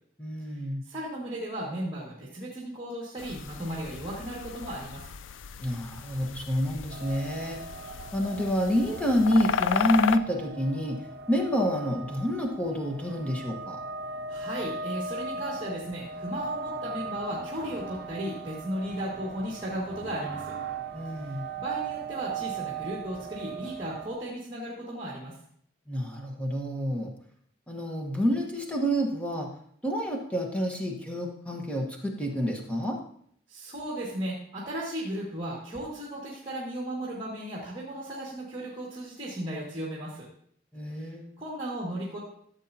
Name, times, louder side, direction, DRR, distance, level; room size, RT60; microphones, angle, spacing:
voice 1, 0.2-0.8 5.6-7.6 8.1-11.0 11.3-13.8 20.9-21.5 25.9-27.1 27.7-29.5 29.8-33.0 40.7-41.4, equal, 5° left, 0 dB, 1.2 m, -28 dB
voice 2, 0.8-5.1 14.3-20.6 21.2-25.4 33.5-40.3 40.9-41.1 41.4-42.2, right 1 dB, 25° right, -5 dB, 1.9 m, -35 dB
sound 1, 3.2-10.2, left 7 dB, 80° left, 0.4 m, -34 dB
sound 2, 6.9-24.1, right 4 dB, 55° right, 0.7 m, -38 dB
13.5 x 7.2 x 2.8 m, 0.64 s
head